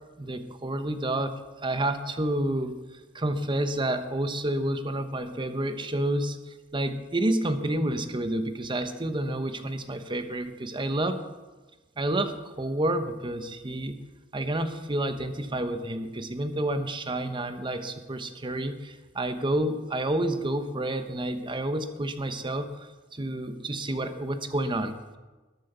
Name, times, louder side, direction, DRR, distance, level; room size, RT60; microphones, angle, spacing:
voice 1, 0.2-2.8 3.1-11.2 12.0-14.0 14.3-25.2, right 1 dB, 25° right, 9 dB, 1.1 m, -29 dB
21.0 x 7.8 x 6.9 m, 1.2 s
head